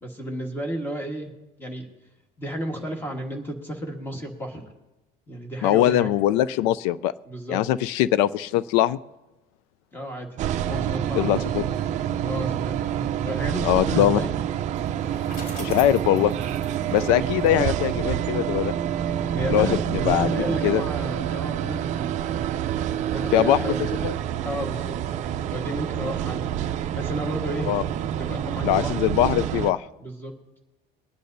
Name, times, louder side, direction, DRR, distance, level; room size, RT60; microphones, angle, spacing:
voice 1, 0.0-1.3 1.6-1.9 2.4-4.6 5.3-6.1 7.2-7.6 9.9-10.3 10.7-11.5 12.2-12.8 13.2-14.4 19.3-22.1 23.0-23.9 24.4-25.0 25.5-26.4 26.9-27.7 28.2-29.0 30.0-30.3, equal, 10° left, 3 dB, 1.4 m, -32 dB
voice 2, 5.6-7.1 7.5-9.0 11.1-11.7 13.6-14.2 15.6-16.3 16.9-18.7 19.5-20.3 20.6-20.8 23.3-23.7 24.0-24.1 27.7-27.8 28.6-29.8, left 12 dB, 85° left, 17 dB, 0.4 m, -21 dB
sound 1, 10.4-29.7, right 10 dB, 35° right, 0.5 m, -27 dB
Bicycle, 14.7-17.9, left 2 dB, 50° left, 4.2 m, -43 dB
21.5 x 10.0 x 2.7 m, 0.98 s
cardioid pair, 160°, 20 cm